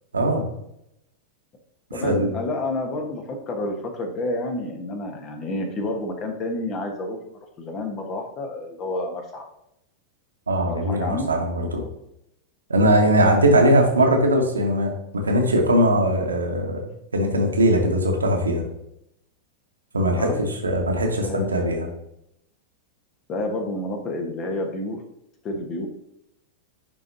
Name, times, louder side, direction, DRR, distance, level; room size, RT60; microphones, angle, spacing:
voice 1, 0.1-0.5 2.0-2.3 10.5-11.8 12.7-16.8 17.1-18.6 19.9-21.9, right 1 dB, 75° right, 2 dB, 1.2 m, -20 dB
voice 2, 1.9-9.5 10.6-11.3 20.0-20.4 21.2-21.5 23.3-25.0 25.4-25.9, left 2 dB, 30° left, 4 dB, 1.2 m, -29 dB
10.5 x 4.0 x 2.7 m, 0.79 s
figure-of-eight pair, 90°, 0 cm